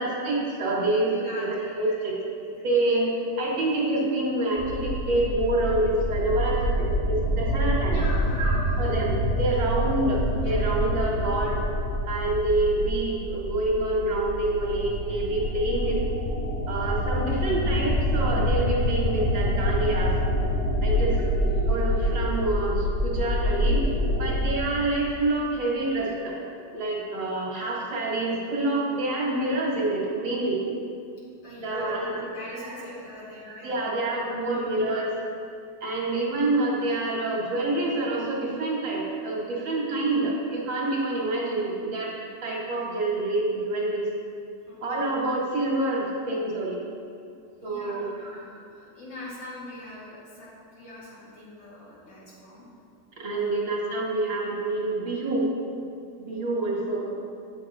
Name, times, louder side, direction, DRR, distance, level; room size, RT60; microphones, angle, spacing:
voice 1, 0.0-1.5 1.8-2.1 2.6-3.1 3.4-8.0 8.4-11.6 12.1-16.0 16.7-20.2 20.8-21.4 21.7-23.8 24.1-26.4 26.7-30.6 31.6-32.3 32.6-32.7 33.4-35.1 35.8-42.1 42.4-44.1 44.8-46.8 47.6-48.4 53.1-55.5 56.2-57.1, right 2 dB, 90° right, -3 dB, 2.1 m, -27 dB
voice 2, 1.2-2.0 2.3-2.6 7.9-8.8 9.3-9.6 10.4-10.7 20.8-21.0 21.3-21.7 31.4-35.0 44.7-45.0 47.6-52.7 53.3-53.8, left 1 dB, 80° left, -7 dB, 2.7 m, -43 dB
sound 1, 4.6-24.4, equal, 50° left, 0.5 m, -26 dB
8.4 x 7.3 x 3.0 m, 2.4 s
omnidirectional pair, 2.0 m